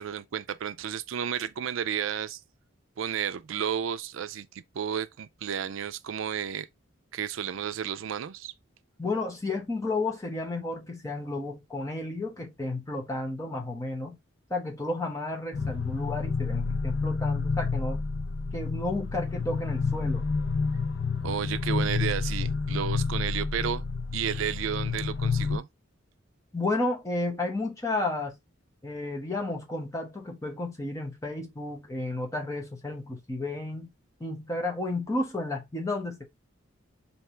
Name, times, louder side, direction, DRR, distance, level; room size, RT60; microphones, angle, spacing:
voice 1, 0.0-2.4 3.0-6.7 7.1-8.5 21.2-23.8 24.1-25.7, right 8 dB, 80° right, 0.4 m, -32 dB
voice 2, 9.0-14.2 14.5-18.0 18.5-20.2 26.5-28.4 28.8-33.9 34.2-36.2, left 2 dB, 15° left, 1.0 m, -32 dB
sound 1, 15.5-25.6, left 4 dB, 65° left, 0.5 m, -29 dB
3.4 x 2.9 x 4.3 m
head